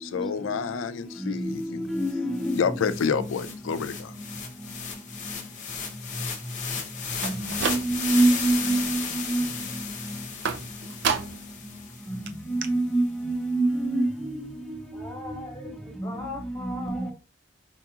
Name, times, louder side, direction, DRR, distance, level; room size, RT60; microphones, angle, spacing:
voice 1, 0.0-1.8 2.6-4.1, left 6 dB, 80° left, 0.4 m, -28 dB
sound 1, 1.6-1.7 2.0-12.3, left 6 dB, 40° left, 0.8 m, -35 dB
voice 2, 1.9-2.5 7.4-9.0 9.3-9.4 12.5-14.5 15.3-15.4, right 2 dB, ahead, 0.4 m, -24 dB
sound 2, 7.1-8.3 8.7-9.2 10.4-11.6 11.9-12.0 12.3-12.4 12.6-12.7, right 6 dB, 60° right, 0.4 m, -31 dB
voice 3, 14.9-17.1, left 2 dB, 15° left, 1.2 m, -39 dB
4.5 x 2.8 x 2.3 m
head